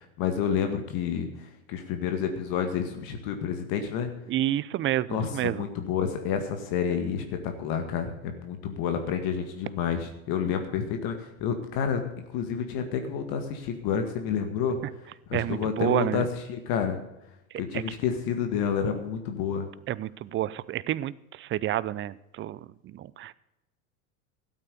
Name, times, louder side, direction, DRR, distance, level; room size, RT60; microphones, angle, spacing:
voice 1, 0.0-4.1 5.1-11.1 11.4-12.0 12.3-14.8 15.3-17.0 17.6-19.7, left 7 dB, 55° left, 6 dB, 2.0 m, -29 dB
voice 2, 4.3-5.7 15.3-16.3 17.7-17.8 19.9-23.3, right 13 dB, 30° right, 19 dB, 0.6 m, -29 dB
13.0 x 8.9 x 6.7 m, 0.91 s
hypercardioid pair, 90°, 42 cm